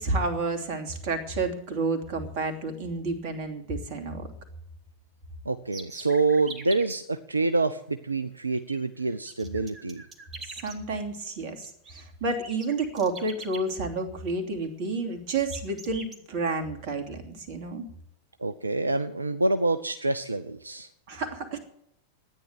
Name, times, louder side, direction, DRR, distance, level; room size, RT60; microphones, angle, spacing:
voice 1, 0.0-4.3 10.5-17.9 21.1-21.6, right 3 dB, 45° right, 5 dB, 2.9 m, -30 dB
voice 2, 5.5-10.0 18.4-20.9, right 3 dB, 80° right, 10 dB, 0.6 m, -27 dB
sound 1, 5.7-7.0 8.5-8.8 9.0-10.8 11.6-12.0 12.3-13.8 14.6-14.9 15.3-16.2, right 3 dB, 25° right, 2.4 m, -43 dB
13.0 x 9.9 x 9.0 m, 0.76 s
figure-of-eight pair, 90°, 0 cm